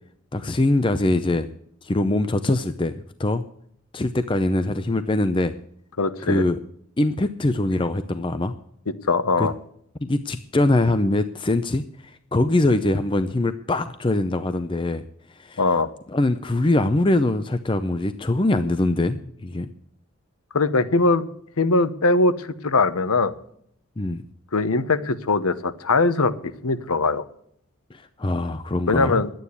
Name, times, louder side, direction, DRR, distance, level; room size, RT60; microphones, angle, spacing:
voice 1, 0.3-1.5 1.8-3.4 3.9-5.5 6.2-6.6 7.0-8.5 9.4-9.5 10.0-15.0 15.3-15.6 16.1-19.7 24.0-24.2 27.9-29.2, left 2 dB, 20° left, 11 dB, 0.5 m, -23 dB
voice 2, 6.0-6.4 9.1-9.5 15.6-15.9 20.5-21.2 21.6-23.4 24.5-26.3 26.6-27.2 28.9-29.3, left 3 dB, 85° left, 14 dB, 1.0 m, -21 dB
11.5 x 9.3 x 8.3 m, 0.68 s
head